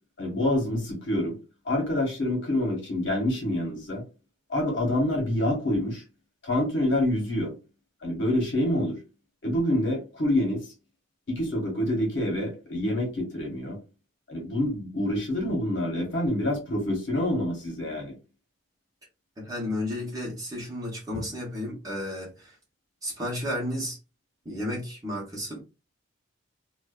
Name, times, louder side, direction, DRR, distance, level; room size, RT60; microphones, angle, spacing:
voice 1, 0.2-1.4 1.6-4.0 4.5-6.0 6.4-7.5 8.0-9.0 9.4-10.7 11.3-13.8 14.3-18.1, left 1 dB, 60° left, 1.1 m, -27 dB
voice 2, 19.4-22.6 23.0-24.0 24.4-25.6, left 1 dB, 15° right, 0.8 m, -32 dB
2.6 x 2.2 x 2.3 m
head